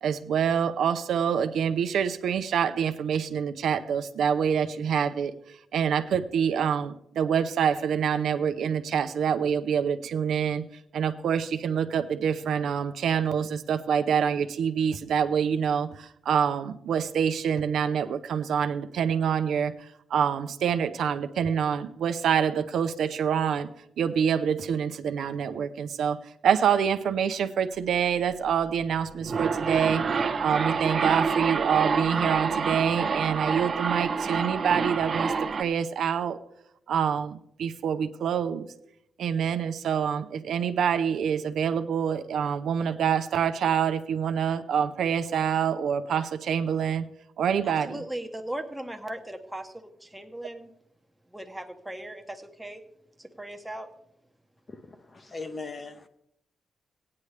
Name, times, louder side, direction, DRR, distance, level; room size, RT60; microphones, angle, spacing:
voice 1, 0.0-5.4 5.7-10.6 10.9-19.7 20.1-23.7 24.0-26.2 26.4-30.1 30.4-36.4 36.9-38.7 39.2-47.0 47.4-48.0, right 7 dB, 80° right, 0.6 m, -26 dB
sound 1, 29.0-35.6, right 5 dB, 40° right, 0.6 m, -27 dB
voice 2, 47.6-50.7 51.3-52.8 53.2-53.9, right 1 dB, 5° right, 0.9 m, -38 dB
voice 3, 55.1-56.1, left 3 dB, 30° left, 0.8 m, -38 dB
17.0 x 9.6 x 3.3 m
wide cardioid pair, 150°, 0 cm